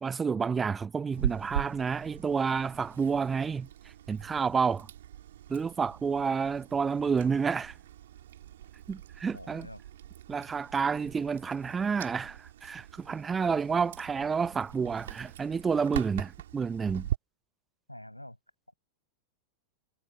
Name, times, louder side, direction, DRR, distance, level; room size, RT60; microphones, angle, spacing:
voice 1, 0.0-4.9 5.5-7.8 8.9-9.7 10.3-17.1, right 5 dB, 15° right, 0.6 m, -30 dB
Chewing mastication, 1.1-17.2, right 12 dB, 60° right, 3.3 m, -41 dB
voice 2, 9.3-9.8 17.9-18.4, left 1 dB, 90° left, 5.4 m, -46 dB
figure-of-eight pair, 90°, 0 cm